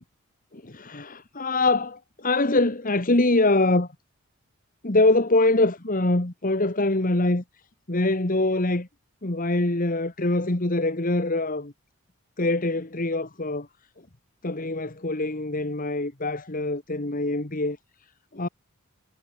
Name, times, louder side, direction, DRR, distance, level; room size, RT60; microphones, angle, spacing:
voice 1, 0.5-3.9 4.8-7.4 7.9-8.9 9.2-11.7 12.4-13.7 14.4-17.8 18.3-18.5, left 2 dB, 40° left, 1.6 m, -24 dB
head